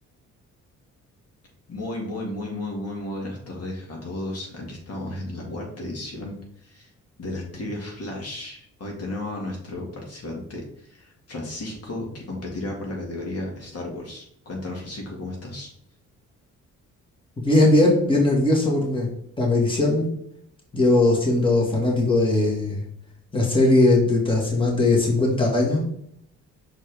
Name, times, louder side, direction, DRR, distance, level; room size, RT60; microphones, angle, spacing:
voice 1, 1.7-6.9 7.2-15.7, left 1 dB, 55° left, 0 dB, 2.0 m, -34 dB
voice 2, 17.4-19.1 19.4-20.1 20.7-22.8 23.3-25.8, left 2 dB, 15° left, -2 dB, 2.0 m, -19 dB
6.3 x 4.3 x 3.5 m, 0.69 s
cardioid pair, 90°, 30 cm